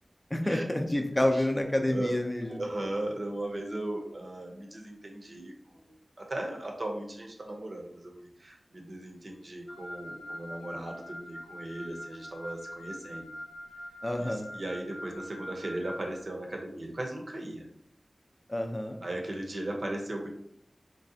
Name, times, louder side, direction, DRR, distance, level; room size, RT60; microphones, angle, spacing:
voice 1, 0.3-2.6 14.0-14.5 18.5-19.0, left 1 dB, 25° left, 4 dB, 0.5 m, -28 dB
voice 2, 1.9-13.3 14.2-17.7 19.0-20.3, right 1 dB, 60° right, 1 dB, 0.7 m, -37 dB
Wind instrument woodwind instrument, 9.7-16.1, equal, 65° left, 0.6 m, -44 dB
3.8 x 3.2 x 2.7 m, 0.69 s
wide cardioid pair, 70°, 0 cm